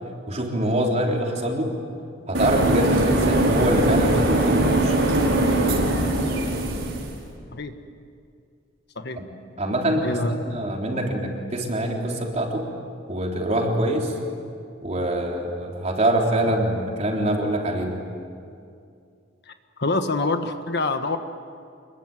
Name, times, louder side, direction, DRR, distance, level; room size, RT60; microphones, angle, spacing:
voice 1, 0.3-1.7 2.3-5.1 9.2-9.3 9.6-10.2 10.5-12.6 13.1-14.1 14.8-18.0, right 1 dB, 35° right, 0 dB, 4.0 m, -24 dB
sound 1, 2.3-7.1, right 1 dB, 85° right, 5.7 m, -21 dB
voice 2, 10.0-10.6 10.9-11.1 19.8-21.2, left 3 dB, 60° left, 8 dB, 1.4 m, -26 dB
27.0 x 22.0 x 9.2 m, 2.4 s
head